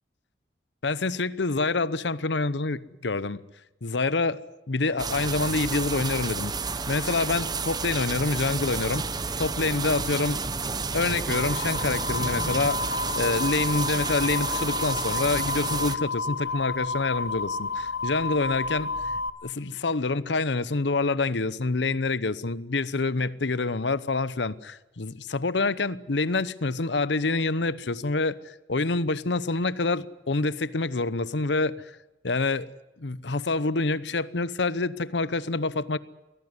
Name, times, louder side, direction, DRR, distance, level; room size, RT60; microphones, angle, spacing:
voice 1, 0.8-3.4 3.8-4.4 4.7-6.5 6.9-9.1 9.4-10.4 10.9-32.0 32.2-32.7 33.0-36.0, left 3 dB, 85° left, 1.0 m, -27 dB
sound 1, 5.0-16.0, right 4 dB, 25° right, 1.0 m, -31 dB
sound 2, 11.3-19.3, left 4 dB, 70° left, 1.4 m, -31 dB
23.5 x 17.0 x 9.6 m
head